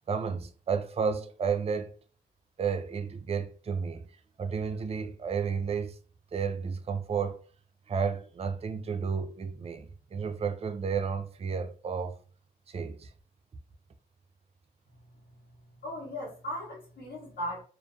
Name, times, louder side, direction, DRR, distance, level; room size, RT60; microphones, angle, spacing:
voice 1, 0.1-1.9 2.6-4.0 4.4-6.0 6.3-7.4 7.9-12.2 12.7-13.1, right 6 dB, 35° right, 0.4 m, -32 dB
voice 2, 15.8-17.6, equal, 80° left, 1.0 m, -37 dB
2.3 x 2.2 x 2.5 m
supercardioid pair, 50°, 17 cm